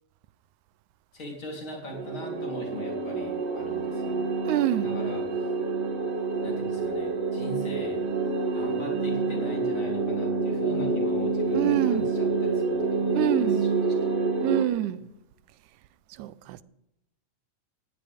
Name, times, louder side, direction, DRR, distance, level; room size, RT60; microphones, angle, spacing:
voice 1, 1.1-4.3 4.8-5.5 6.4-8.0 8.5-13.7, left 1 dB, 40° left, 4.3 m, -40 dB
sound 1, 1.9-14.6, right 3 dB, 55° right, 2.9 m, -27 dB
voice 2, 4.4-4.9 11.5-12.1 13.1-13.6 14.4-15.0 16.1-16.6, right 14 dB, 90° right, 2.1 m, -26 dB
19.5 x 16.0 x 3.6 m
omnidirectional pair, 3.4 m